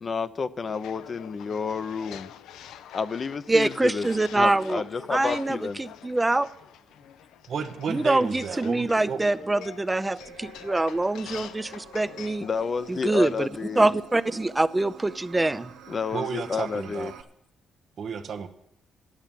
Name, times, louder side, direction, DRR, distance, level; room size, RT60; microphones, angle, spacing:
voice 1, 0.0-2.3 2.9-4.1 4.4-5.8 12.4-13.9 15.9-17.1, left 5 dB, 40° left, 0.6 m, -30 dB
sound 1, 0.7-13.3, left 10 dB, 85° left, 0.5 m, -45 dB
voice 2, 3.5-4.8 5.1-6.5 7.9-12.5 12.9-13.5 13.8-15.7, right 2 dB, 15° right, 0.5 m, -24 dB
voice 3, 7.5-9.2 16.1-17.1 18.0-18.5, right 6 dB, 60° right, 0.9 m, -32 dB
sound 2, 10.2-17.2, right 6 dB, 85° right, 0.8 m, -48 dB
11.0 x 7.1 x 9.0 m
cardioid pair, 90°, 0 cm